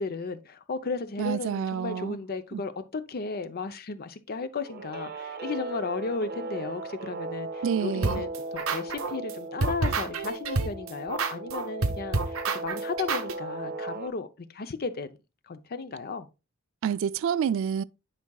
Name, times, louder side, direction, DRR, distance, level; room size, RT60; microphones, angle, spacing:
voice 1, 0.0-15.1 15.5-16.3, left 4 dB, 50° left, 0.6 m, -34 dB
voice 2, 1.2-2.2 2.5-2.6 7.6-8.2 16.8-17.8, right 8 dB, 65° right, 0.3 m, -28 dB
Guitar, 4.6-14.1, right 2 dB, 50° right, 0.8 m, -37 dB
sound 1, 8.0-9.3 9.6-13.3, right 3 dB, 90° right, 0.9 m, -28 dB
10.0 x 4.7 x 2.3 m
head